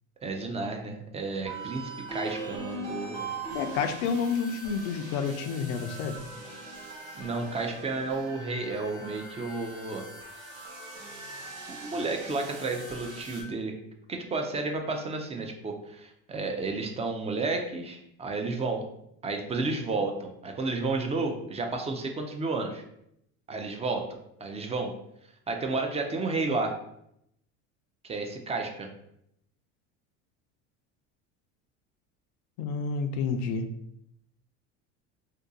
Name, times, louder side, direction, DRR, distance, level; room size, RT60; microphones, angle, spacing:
voice 1, 0.2-3.3 7.1-10.0 11.7-13.7 14.1-18.8 19.2-22.8 23.5-24.9 25.5-26.7 28.0-28.9, right 3 dB, 20° right, 3 dB, 0.4 m, -32 dB
sound 1, 1.4-13.4, right 3 dB, 85° right, 1.2 m, -41 dB
voice 2, 3.5-6.2 32.6-33.6, left 5 dB, 75° left, 7 dB, 0.6 m, -29 dB
2.7 x 2.2 x 3.7 m, 0.76 s
supercardioid pair, 100°, 37 cm